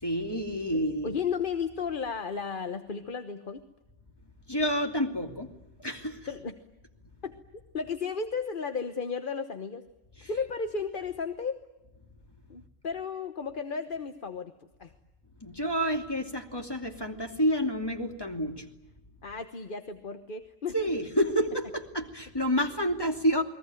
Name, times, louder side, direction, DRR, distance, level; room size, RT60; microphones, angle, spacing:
voice 1, 0.0-1.1 4.5-5.5 5.8-6.3 10.2-10.3 15.4-18.7 20.7-23.4, equal, 20° left, 4 dB, 2.8 m, -29 dB
voice 2, 1.0-3.6 6.3-6.5 7.2-7.4 7.7-9.8 10.2-11.6 12.5-14.5 14.8-14.9 19.2-20.7, left 5 dB, 45° left, 9 dB, 1.2 m, -34 dB
29.5 x 21.5 x 9.1 m, 1.0 s
omnidirectional pair, 1.3 m